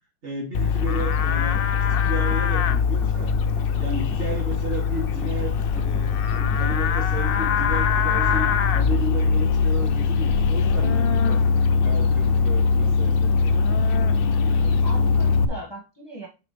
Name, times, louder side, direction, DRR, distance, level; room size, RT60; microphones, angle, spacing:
voice 1, 0.2-1.6 1.9-3.4 3.8-11.4 11.8-13.5, right 1 dB, 45° right, -2 dB, 2.8 m, -33 dB
Livestock farm animals working animals, 0.5-15.5, left 5 dB, 90° left, 0.5 m, -21 dB
sound 1, 0.8-2.4 3.0-4.6 5.2-6.8 7.4-9.0 9.8-11.4, equal, ahead, 2.3 m, -43 dB
voice 2, 14.5-16.3, equal, 15° left, -2 dB, 1.7 m, -38 dB
7.6 x 5.0 x 3.3 m, 0.29 s
omnidirectional pair, 1.7 m